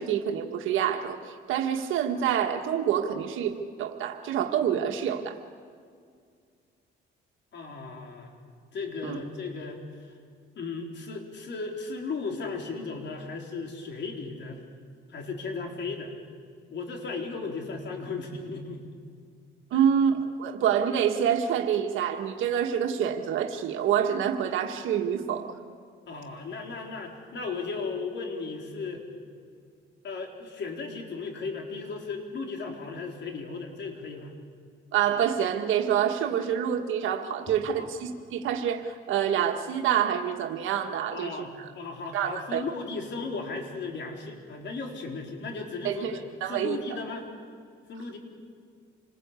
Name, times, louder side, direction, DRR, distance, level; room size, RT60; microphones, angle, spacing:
voice 1, 0.0-3.5 3.8-5.4 9.0-9.2 19.7-25.5 34.9-41.4 42.1-42.6 45.8-46.8, right 9 dB, 85° right, 4 dB, 1.7 m, -27 dB
voice 2, 7.5-8.3 8.7-10.1 10.6-14.6 15.1-16.1 16.7-18.8 19.7-19.8 26.1-29.0 30.0-34.3 37.5-37.9 41.1-47.2 47.9-48.2, left 4 dB, 65° left, 2 dB, 4.2 m, -36 dB
27.0 x 20.0 x 8.3 m, 2.2 s
cardioid pair, 90°, 20 cm